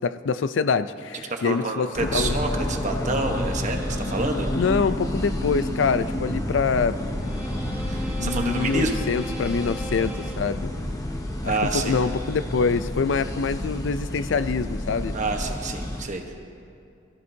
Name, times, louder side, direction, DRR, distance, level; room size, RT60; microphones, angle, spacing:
voice 1, 0.0-2.4 4.5-7.0 8.2-10.7 11.4-15.2, left 5 dB, 80° left, 13 dB, 0.4 m, -25 dB
voice 2, 1.3-4.5 7.8-9.1 11.4-12.0 15.1-16.2, right 2 dB, 40° right, 4 dB, 1.1 m, -28 dB
sound 1, 2.0-16.0, left 1 dB, 20° left, 0.9 m, -30 dB
sound 2, 5.7-12.0, equal, 10° right, 1.1 m, -39 dB
22.0 x 14.0 x 2.8 m, 2.5 s
head